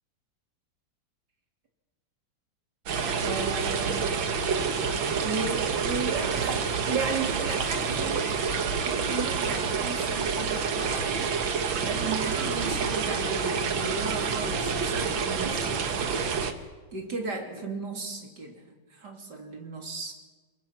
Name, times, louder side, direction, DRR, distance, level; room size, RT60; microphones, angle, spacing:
sound 1, 2.9-16.5, right 5 dB, 85° right, 2.2 m, -28 dB
voice 1, 3.2-4.2 5.2-8.5 8.8-11.1 11.8-16.5 16.9-20.1, right 3 dB, 60° right, 2 dB, 3.7 m, -35 dB
27.5 x 23.0 x 6.0 m, 1.3 s
omnidirectional pair, 2.1 m